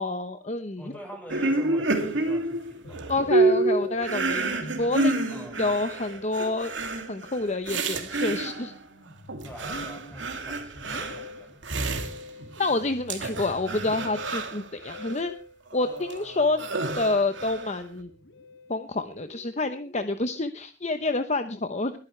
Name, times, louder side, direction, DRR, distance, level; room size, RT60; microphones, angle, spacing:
voice 1, 0.0-0.9 3.1-6.7 7.1-8.7 12.6-15.3 15.7-16.6 17.0-18.1 18.7-21.9, left 2 dB, 35° left, 8 dB, 0.9 m, -28 dB
voice 2, 0.8-3.1 5.3-5.8 9.4-11.6, equal, 10° left, 2 dB, 5.6 m, -45 dB
sound 1, 1.3-8.8 9.3-12.8 13.1-15.2 15.7-17.8, right 2 dB, 80° right, 2.7 m, -29 dB
Musical instrument, 2.8-20.4, left 2 dB, 75° left, 2.3 m, -44 dB
22.0 x 10.0 x 3.3 m, 0.34 s
head